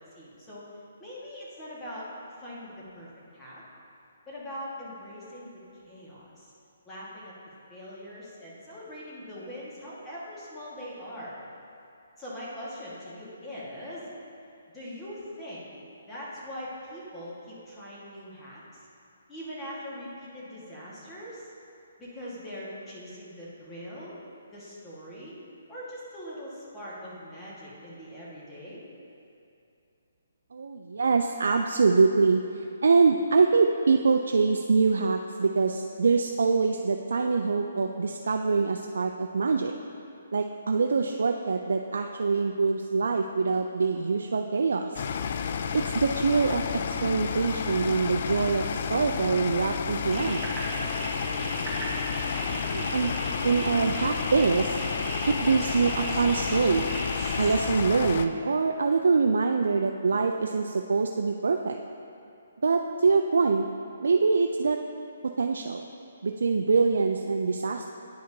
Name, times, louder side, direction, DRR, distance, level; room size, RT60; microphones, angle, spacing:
voice 1, 0.1-0.6 1.0-2.1 2.4-3.6 4.3-6.5 6.8-7.3 7.7-11.4 12.2-14.1 14.7-15.7 16.1-18.6 19.3-21.5 22.0-24.1 24.5-25.4 25.7-28.8, equal, 15° left, -8 dB, 1.6 m, -41 dB
voice 2, 30.5-39.7 40.3-45.0 45.7-50.4 51.2-52.0 52.5-53.1 53.4-54.8 55.3-56.9 57.4-61.8 62.6-63.6 64.0-64.8 65.4-65.8 66.2-67.9, right 4 dB, 75° right, 4 dB, 0.3 m, -24 dB
sound 1, 45.0-58.3, left 6 dB, 50° left, 0.3 m, -31 dB
sound 2, 50.1-57.6, right 1 dB, 15° right, 1.1 m, -36 dB
10.0 x 5.0 x 2.7 m, 2.6 s
hypercardioid pair, 150°, 0 cm